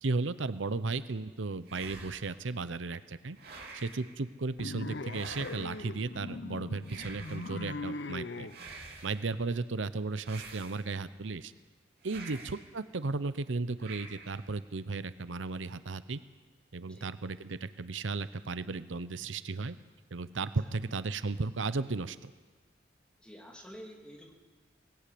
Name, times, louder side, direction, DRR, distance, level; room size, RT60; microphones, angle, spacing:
voice 1, 0.0-3.4 3.7-8.5 9.0-11.5 12.0-16.2 16.7-19.8 20.1-22.3, right 3 dB, 90° right, 14 dB, 0.8 m, -35 dB
sound 1, 1.7-2.5 3.4-4.1 5.1-5.9 6.8-7.6 8.5-9.3 10.2-11.1 12.0-12.7 13.8-14.5, right 3 dB, 55° right, 3.1 m, -48 dB
sound 2, 4.6-8.6, left 2 dB, 65° left, 0.8 m, -40 dB
voice 2, 23.2-24.3, equal, 5° left, -1 dB, 3.2 m, -49 dB
20.5 x 16.5 x 8.5 m, 1.4 s
head